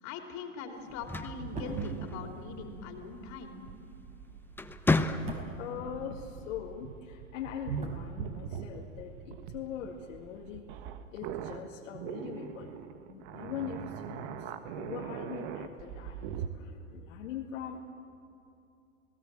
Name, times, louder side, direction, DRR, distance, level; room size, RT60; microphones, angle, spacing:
voice 1, 0.0-3.6, left 5 dB, 45° left, 3 dB, 3.5 m, -41 dB
sound 1, 0.9-2.4 3.8-4.1 4.5-5.7, left 3 dB, 5° left, 0.8 m, -31 dB
sound 2, 0.9-16.5, right 8 dB, 50° right, 1.6 m, -42 dB
sound 3, 1.4-6.7 6.9-8.8 9.0-9.2, right 1 dB, 15° right, 4.8 m, -47 dB
voice 2, 5.3-10.7 11.1-12.7 13.1-16.2 16.6-17.8, left 8 dB, 70° left, 0 dB, 2.2 m, -42 dB
28.5 x 18.0 x 7.7 m, 2.6 s
hypercardioid pair, 115°, 40 cm